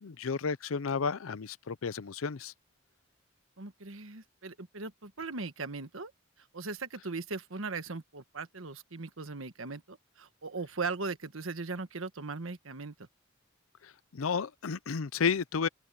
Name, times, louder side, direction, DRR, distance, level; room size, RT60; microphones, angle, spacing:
voice 1, 0.0-2.5 13.8-15.7, left 5 dB, 90° left, 0.6 m, -32 dB
voice 2, 3.6-6.1 6.5-12.9, right 4 dB, 80° right, 1.3 m, -39 dB
open air
head